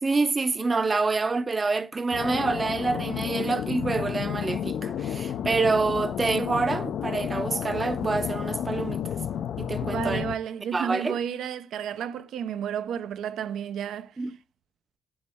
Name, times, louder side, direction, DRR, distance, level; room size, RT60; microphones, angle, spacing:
voice 1, 0.0-9.0 9.6-10.3 10.7-11.2 14.2-14.4, right 3 dB, 25° right, 0.5 m, -27 dB
sound 1, 2.1-10.4, left 9 dB, 70° left, 0.4 m, -31 dB
voice 2, 9.9-14.1, right 8 dB, 80° right, 0.6 m, -32 dB
8.6 x 4.1 x 3.5 m
cardioid pair, 120°, 0 cm